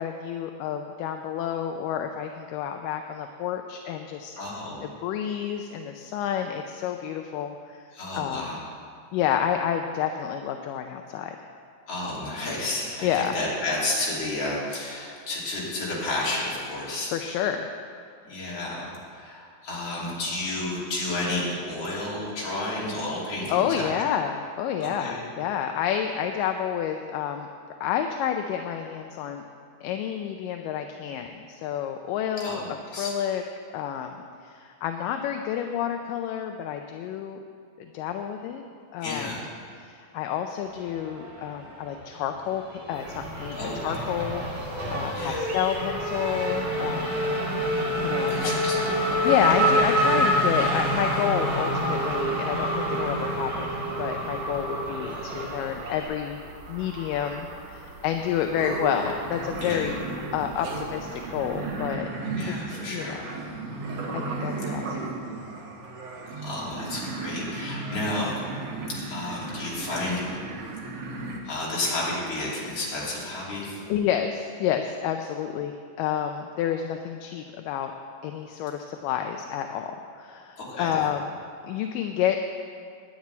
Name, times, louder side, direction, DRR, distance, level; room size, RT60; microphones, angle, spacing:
voice 1, 0.0-4.4 4.8-7.8 8.1-8.5 9.1-11.4 13.0-13.4 17.1-17.7 23.5-27.5 27.8-29.4 29.8-32.6 33.0-33.4 33.7-37.4 37.8-38.7 38.9-39.3 39.8-43.6 43.8-47.2 48.0-48.4 49.2-56.4 56.7-60.0 60.3-62.1 62.5-62.6 62.9-63.2 64.1-65.0 73.9-77.9 78.2-81.2 81.6-82.4, left 9 dB, 80° left, 5 dB, 2.1 m, -29 dB
voice 2, 4.4-4.8 7.9-8.6 11.9-17.1 18.2-23.9 24.8-25.2 32.4-32.6 32.9-33.1 39.0-39.4 43.5-44.2 45.1-45.5 48.2-49.6 59.6-59.9 62.2-63.2 66.4-68.4 69.0-70.3 70.9-71.1 71.4-73.8 80.6-81.0, left 2 dB, 45° left, -6 dB, 3.7 m, -31 dB
Race car auto racing / Accelerating revving vroom, 41.0-42.0 42.3-56.0, equal, 20° right, 2.0 m, -27 dB
sound 1, 42.9-62.0, right 3 dB, 80° right, 3.8 m, -41 dB
sound 2, 58.6-71.4, right 3 dB, 60° right, 2.0 m, -35 dB
10.5 x 7.5 x 9.4 m, 2.3 s
omnidirectional pair, 4.2 m